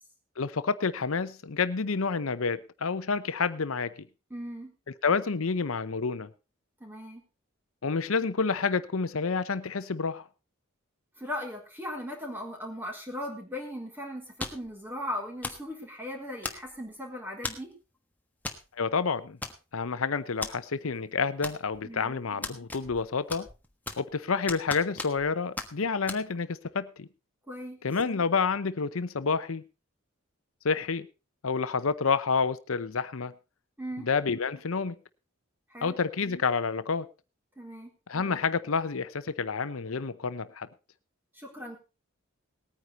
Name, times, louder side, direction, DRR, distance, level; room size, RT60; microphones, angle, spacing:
voice 1, 0.4-3.9 5.0-6.3 7.8-10.3 18.8-19.4 19.7-23.5 24.0-27.1 27.8-29.6 30.6-31.1 31.4-33.3 34.0-35.0 35.8-37.1 38.1-40.7, left 5 dB, 80° left, 0.8 m, -29 dB
voice 2, 4.3-4.7 6.8-7.2 11.2-17.7 21.8-22.2 27.5-27.8 33.8-34.1 35.7-35.9 37.6-37.9 41.3-41.8, left 1 dB, 10° right, 4.2 m, -38 dB
sound 1, 14.4-14.7 15.4-15.7 16.4-16.9 17.4-17.7 18.4-18.6 18.9-19.0 19.4-19.9 20.4-20.5 21.4-21.9 22.4-23.0 23.3-24.1 24.5-25.3 25.6-25.7 26.1-26.2, left 2 dB, 10° left, 1.3 m, -37 dB
19.0 x 9.5 x 4.1 m
head